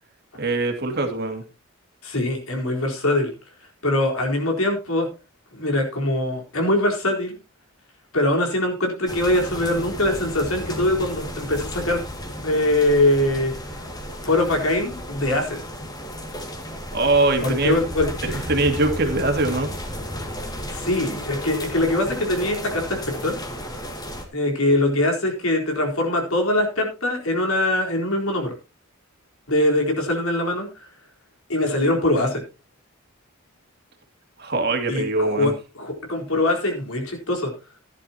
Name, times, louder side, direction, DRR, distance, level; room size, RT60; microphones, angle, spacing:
voice 1, 0.4-1.4 16.9-17.8 18.5-19.7 34.4-35.5, right 2 dB, 50° right, 4 dB, 2.5 m, -22 dB
voice 2, 2.0-3.3 3.8-5.1 5.5-7.4 8.1-12.0 12.4-13.5 14.2-15.6 17.4-18.6 20.7-23.4 24.3-28.5 29.5-30.9 31.5-32.4 34.9-37.5, left 1 dB, 75° left, 2 dB, 4.2 m, -22 dB
sound 1, 9.1-24.3, equal, 20° left, 2.2 m, -33 dB
15.5 x 11.0 x 2.9 m, 0.29 s
head